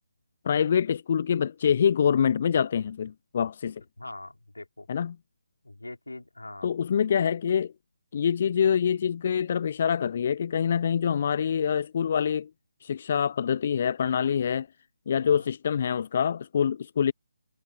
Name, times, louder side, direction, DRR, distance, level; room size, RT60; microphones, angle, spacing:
voice 1, 0.4-3.8 4.9-5.2 6.6-7.7 8.1-12.5 12.8-14.7 15.1-17.1, left 7 dB, 40° left, 0.5 m, -25 dB
voice 2, 4.0-4.9 5.6-6.7 15.2-15.5, left 2 dB, 75° left, 4.1 m, -42 dB
figure-of-eight pair, 145°, 0 cm